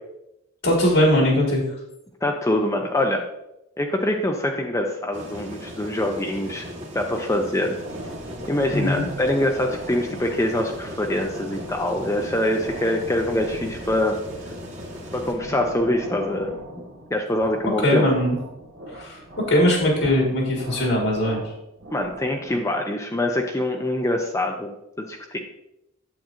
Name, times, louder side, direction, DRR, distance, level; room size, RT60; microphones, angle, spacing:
voice 1, 0.6-1.6 8.7-9.1 17.8-18.4 18.9-21.4, left 1 dB, 70° left, -1 dB, 1.7 m, -20 dB
voice 2, 2.2-3.2 3.8-6.7 6.9-7.8 8.5-14.2 15.1-16.5 17.1-18.1 21.9-24.7 25.1-25.4, left 1 dB, 15° left, 2 dB, 0.5 m, -24 dB
sound 1, 5.1-15.3, equal, 35° right, 1.4 m, -37 dB
sound 2, 7.8-22.5, right 1 dB, 70° right, 1.8 m, -40 dB
8.9 x 7.6 x 2.5 m, 0.86 s
head